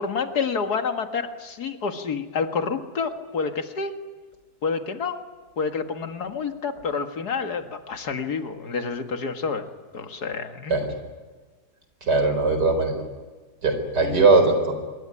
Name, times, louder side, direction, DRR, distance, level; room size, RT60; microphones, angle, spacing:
voice 1, 0.0-4.0 4.6-5.2 5.6-9.7 9.9-10.8 14.0-14.3, left 5 dB, 70° left, 7 dB, 2.3 m, -28 dB
voice 2, 12.0-13.0 13.6-14.7, right 3 dB, 85° right, 7 dB, 5.0 m, -20 dB
26.0 x 23.0 x 9.9 m, 1.4 s
omnidirectional pair, 1.7 m